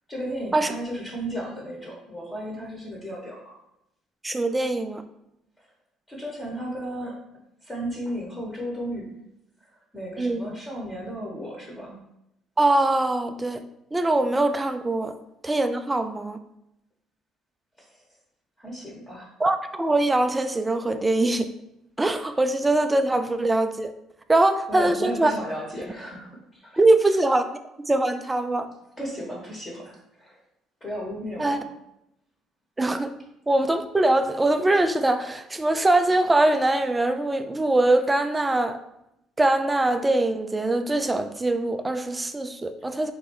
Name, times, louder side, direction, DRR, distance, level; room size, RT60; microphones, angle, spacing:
voice 1, 0.1-3.6 5.6-5.7 6.1-7.1 7.6-9.2 9.9-12.0 17.8-18.0 18.6-19.3 24.7-27.2 29.0-30.4 30.8-31.6, equal, 15° left, -3 dB, 1.0 m, -34 dB
voice 2, 4.2-5.0 10.2-10.4 12.6-13.6 13.9-15.1 15.4-16.4 19.4-21.5 22.0-23.9 24.3-25.3 26.8-27.4 27.9-28.7 31.4-31.6 32.8-33.1 33.5-38.8 39.4-43.1, right 2 dB, 10° right, 9 dB, 0.3 m, -22 dB
3.6 x 3.0 x 4.6 m, 0.82 s
cardioid pair, 145°, 0 cm